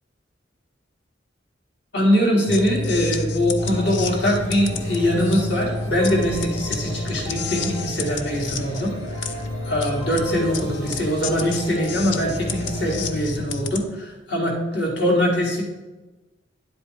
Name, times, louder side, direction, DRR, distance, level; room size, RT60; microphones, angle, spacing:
voice 1, 1.9-8.9 9.7-15.6, equal, 65° left, -2 dB, 2.6 m, -22 dB
sound 1, 2.5-13.8, left 3 dB, 85° left, 0.7 m, -29 dB
sound 2, 3.6-13.1, equal, 30° left, 3.4 m, -38 dB
10.0 x 8.0 x 3.4 m, 1.1 s
head